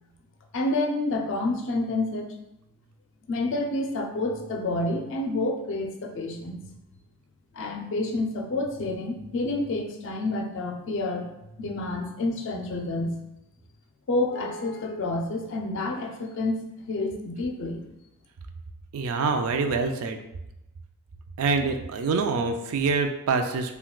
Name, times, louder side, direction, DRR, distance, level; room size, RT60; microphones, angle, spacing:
voice 1, 0.5-2.3 3.3-6.6 7.5-11.3 11.6-13.2 14.1-17.8, left 2 dB, 55° left, 2 dB, 0.4 m, -29 dB
voice 2, 18.9-20.2 21.4-23.8, right 4 dB, 70° right, 6 dB, 0.3 m, -25 dB
3.7 x 2.2 x 2.3 m, 0.90 s
head